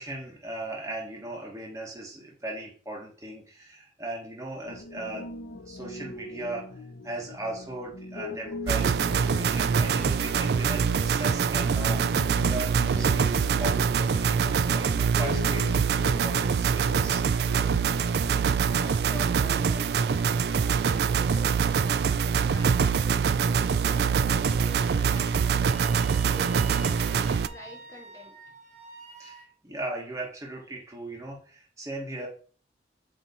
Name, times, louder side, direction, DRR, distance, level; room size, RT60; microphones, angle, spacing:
voice 1, 0.0-5.3 5.6-6.7 7.0-12.0 12.4-17.2 29.2-32.3, right 1 dB, 15° right, -2 dB, 1.2 m, -37 dB
Piano, 4.6-18.3, left 2 dB, 85° left, 0.7 m, -42 dB
sound 1, 8.7-27.5, right 6 dB, 65° right, 0.3 m, -24 dB
voice 2, 18.6-28.4, left 1 dB, 15° left, -1 dB, 1.6 m, -47 dB
Wind instrument woodwind instrument, 24.4-29.5, right 4 dB, 40° right, 1.2 m, -47 dB
8.0 x 3.0 x 4.1 m, 0.42 s
head